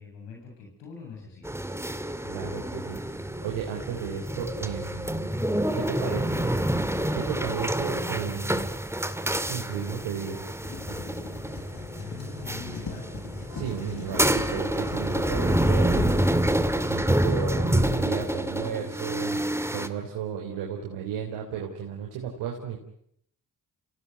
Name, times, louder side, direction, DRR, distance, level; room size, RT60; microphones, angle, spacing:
voice 1, 0.0-1.7 6.0-6.5 12.0-13.1, left 5 dB, 90° left, -1 dB, 7.5 m, -42 dB
sound 1, 1.4-19.9, right 1 dB, 5° right, 2.2 m, -28 dB
voice 2, 2.2-5.3 5.7-6.2 7.1-8.5 9.4-10.5 13.5-16.5 16.8-22.8, right 8 dB, 90° right, 0 dB, 3.5 m, -34 dB
Writing, 10.6-16.2, left 6 dB, 55° left, 5.8 m, -40 dB
28.0 x 17.0 x 9.5 m, 0.71 s
supercardioid pair, 50°, 41 cm